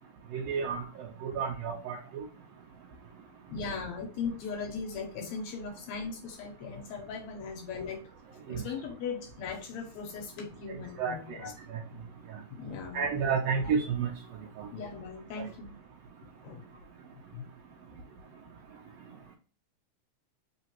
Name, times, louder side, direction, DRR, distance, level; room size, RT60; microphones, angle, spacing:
voice 1, 0.3-2.2 8.5-8.6 10.7-11.4 11.7-11.8 12.9-14.1 14.6-14.7, right 6 dB, 80° right, 1 dB, 1.4 m, -31 dB
voice 2, 3.5-8.0 8.5-11.5 12.5-13.2 14.7-15.7 16.4-16.6 17.3-17.4, left 5 dB, 75° left, 3 dB, 1.9 m, -38 dB
4.1 x 3.7 x 2.8 m, 0.38 s
omnidirectional pair, 3.5 m